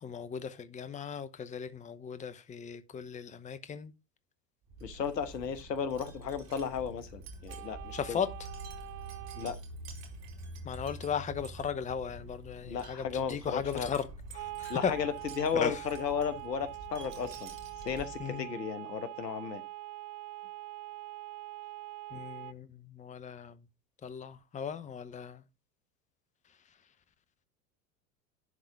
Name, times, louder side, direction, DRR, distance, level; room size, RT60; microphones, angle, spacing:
voice 1, 0.0-3.9 7.9-8.3 10.6-14.1 14.3-14.9 15.5-15.8 18.2-18.5 22.1-23.6 24.0-25.4, left 7 dB, 15° left, 0.8 m, -36 dB
Wind chime, 4.7-18.4, right 2 dB, 50° right, 2.9 m, -47 dB
voice 2, 4.8-8.2 9.4-9.6 12.6-13.9 14.7-17.5 17.8-19.6, left 7 dB, 85° left, 1.2 m, -34 dB
sound 1, 7.5-9.5 14.3-22.5, right 16 dB, 70° right, 0.7 m, -44 dB
11.0 x 3.9 x 4.7 m
hypercardioid pair, 85°, 48 cm